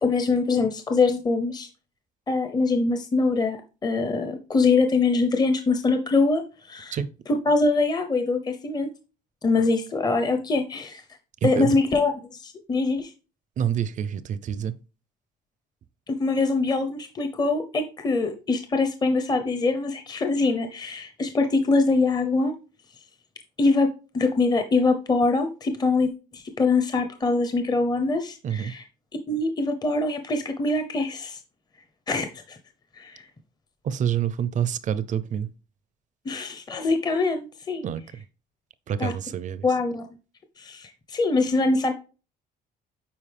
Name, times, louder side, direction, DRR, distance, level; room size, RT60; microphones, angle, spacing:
voice 1, 0.0-1.7 2.3-7.0 7.3-8.9 9.4-11.0 11.4-12.1 12.4-13.1 16.1-22.5 23.6-23.9 24.1-28.8 29.3-31.4 32.1-32.6 33.0-33.2 36.2-37.8 39.0-39.1 39.6-40.1 40.6-41.9, left 3 dB, 25° left, 0.8 m, -23 dB
voice 2, 11.4-11.8 13.6-14.7 28.4-28.7 33.8-35.5 37.8-38.2 38.9-39.7, right 9 dB, 50° right, 0.6 m, -27 dB
8.7 x 4.5 x 3.4 m
cardioid pair, 110°, 17 cm